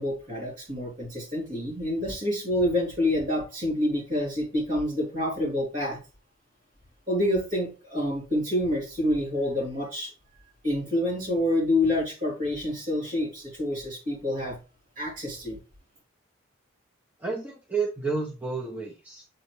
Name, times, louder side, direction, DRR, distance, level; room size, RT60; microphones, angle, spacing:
voice 1, 0.0-6.0 7.1-10.1 10.6-14.6 15.0-15.6, left 1 dB, 40° right, -3 dB, 3.1 m, -27 dB
voice 2, 17.2-19.2, right 4 dB, 10° right, -1 dB, 0.8 m, -31 dB
7.7 x 4.1 x 3.2 m, 0.32 s
head